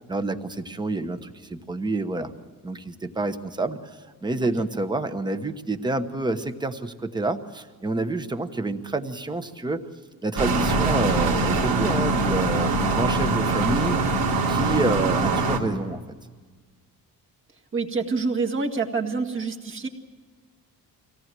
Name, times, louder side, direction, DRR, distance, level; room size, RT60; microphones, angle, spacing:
voice 1, 0.0-2.3 2.6-9.8 10.2-14.0 14.5-16.0, right 2 dB, 10° right, 9 dB, 1.0 m, -28 dB
sound 1, 10.4-15.6, right 3 dB, 80° right, 3.1 m, -23 dB
voice 2, 17.7-19.9, right 4 dB, 35° right, 2 dB, 2.0 m, -26 dB
24.5 x 18.0 x 7.6 m, 1.5 s
cardioid pair, 170°, 35 cm